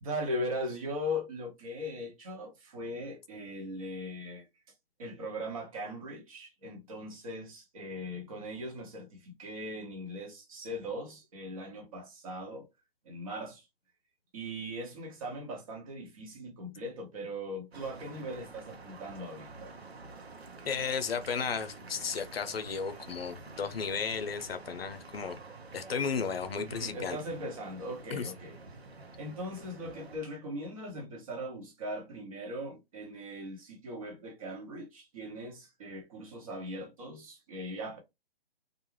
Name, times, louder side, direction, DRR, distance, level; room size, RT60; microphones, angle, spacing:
voice 1, 0.0-4.5 5.0-12.7 13.0-13.7 14.3-19.8 26.2-26.3 26.6-28.6 29.2-38.0, equal, 35° right, 0.9 m, -39 dB
sound 1, 17.7-30.2, right 3 dB, 85° right, 0.9 m, -49 dB
voice 2, 20.6-25.4 25.7-27.2 28.1-28.3, left 6 dB, 70° left, 0.6 m, -34 dB
2.5 x 2.2 x 3.1 m
hypercardioid pair, 150°, 31 cm